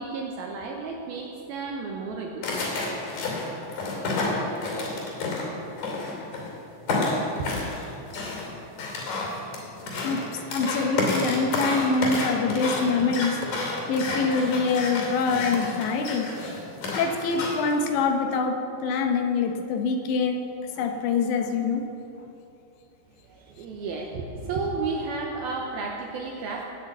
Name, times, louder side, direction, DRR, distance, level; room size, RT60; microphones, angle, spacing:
voice 1, 0.0-2.5 7.4-7.5 23.2-26.6, right 4 dB, 75° right, 0 dB, 2.3 m, -32 dB
sound 1, 2.4-6.5 6.9-17.7, left 3 dB, 55° left, 4.2 m, -30 dB
voice 2, 10.0-13.5 13.9-16.3 17.0-20.4 20.7-21.9, left 4 dB, 75° left, 5 dB, 3.1 m, -25 dB
19.0 x 6.6 x 8.0 m, 2.8 s
omnidirectional pair, 5.3 m